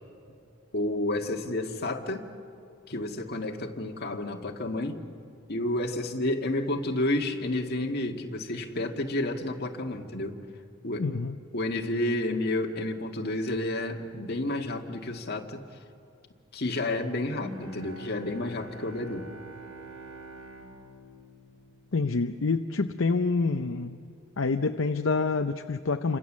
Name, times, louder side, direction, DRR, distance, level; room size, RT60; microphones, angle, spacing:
voice 1, 0.7-2.3 2.9-5.0 5.5-10.3 10.8-11.0 11.5-15.6 16.5-19.3, left 1 dB, 50° left, 3 dB, 1.9 m, -30 dB
voice 2, 11.0-11.4 21.9-26.2, left 4 dB, 70° left, 7 dB, 0.7 m, -27 dB
Bowed string instrument, 17.4-22.5, right 1 dB, 90° right, 5.9 m, -46 dB
28.5 x 26.0 x 7.4 m, 2.4 s
head